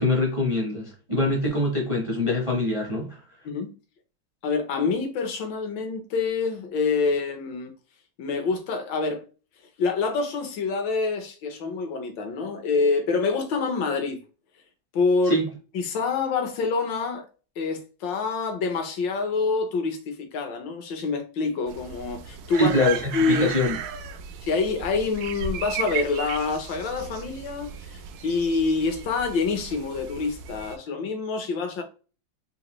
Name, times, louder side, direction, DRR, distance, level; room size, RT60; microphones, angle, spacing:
voice 1, 0.0-3.2 15.3-15.5 22.6-23.8, left 1 dB, 35° right, 0.4 m, -24 dB
voice 2, 4.4-7.7 8.2-9.2 9.8-14.2 14.9-15.4 15.7-17.3 17.6-23.5 24.4-31.8, left 4 dB, 75° left, 1.5 m, -26 dB
sound 1, 21.7-30.8, right 7 dB, 75° right, 0.9 m, -35 dB
4.0 x 2.5 x 3.0 m
omnidirectional pair, 2.1 m